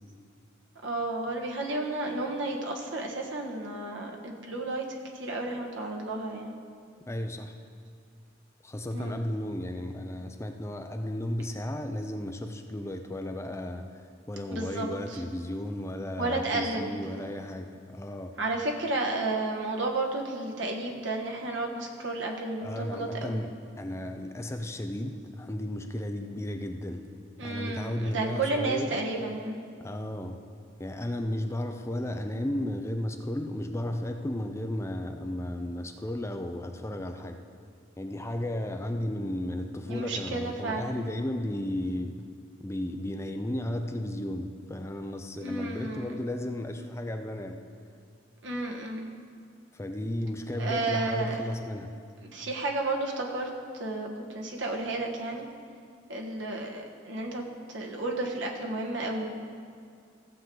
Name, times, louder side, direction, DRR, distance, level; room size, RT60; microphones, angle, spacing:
voice 1, 0.8-4.9 5.1-6.5 8.9-9.2 14.5-15.2 16.2-16.9 18.4-23.4 27.4-29.6 39.9-41.1 45.3-46.2 48.4-49.1 50.6-51.4 52.3-55.5 56.1-57.4 57.7-59.3, right 2 dB, 80° right, 0 dB, 1.5 m, -32 dB
voice 2, 7.1-7.6 8.6-18.3 22.6-27.1 27.4-29.0 29.8-30.4 30.8-37.4 38.0-42.3 42.6-47.6 49.7-52.0, left 1 dB, 15° left, 5 dB, 0.5 m, -34 dB
15.5 x 7.4 x 3.9 m, 2.3 s
head